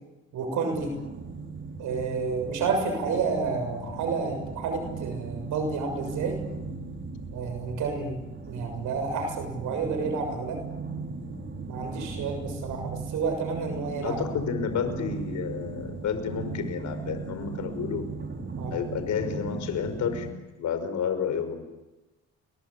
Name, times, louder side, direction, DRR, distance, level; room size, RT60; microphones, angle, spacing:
voice 1, 0.3-0.9 1.8-6.4 7.3-8.2 8.5-10.6 11.7-14.2 18.6-18.8, right 4 dB, 85° right, 5 dB, 6.9 m, -30 dB
sound 1, 0.7-20.3, right 4 dB, 40° right, 4.4 m, -37 dB
voice 2, 14.0-18.0 18.7-20.3 20.6-21.6, left 7 dB, 70° left, 9 dB, 5.8 m, -30 dB
29.5 x 23.0 x 8.7 m, 1.1 s
cardioid pair, 90°, 30 cm